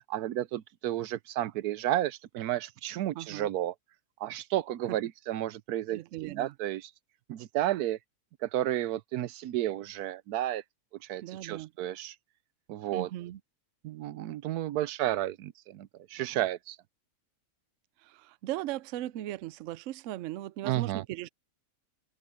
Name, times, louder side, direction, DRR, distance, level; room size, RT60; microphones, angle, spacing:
voice 1, 0.0-3.7 4.2-6.9 7.3-8.0 8.4-10.6 11.0-12.2 12.7-13.1 13.8-16.8 20.6-21.0, right 13 dB, 90° right, 1.2 m, -32 dB
voice 2, 3.1-3.5 4.9-5.0 5.9-6.5 11.2-11.7 12.9-13.4 18.0-21.3, right 14 dB, 70° right, 0.8 m, -38 dB
open air
omnidirectional pair, 1.6 m